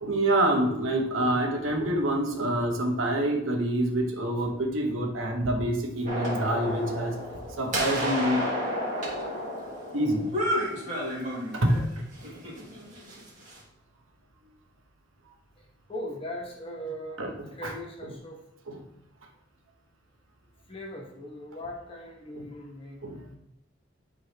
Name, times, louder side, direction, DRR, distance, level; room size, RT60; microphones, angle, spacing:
voice 1, 0.0-7.2 7.6-8.5 9.9-10.4 11.5-11.9 12.2-12.3 17.2-17.7 18.7-18.8 22.4-22.5 23.0-23.2, right 1 dB, 85° right, 3 dB, 1.1 m, -27 dB
sound 1, 6.1-11.8 12.2-13.6, equal, 40° right, 2.0 m, -31 dB
voice 2, 15.5-17.2 17.5-18.4 20.7-23.4, equal, 30° left, -1 dB, 1.2 m, -39 dB
11.0 x 3.9 x 2.9 m, 0.80 s
head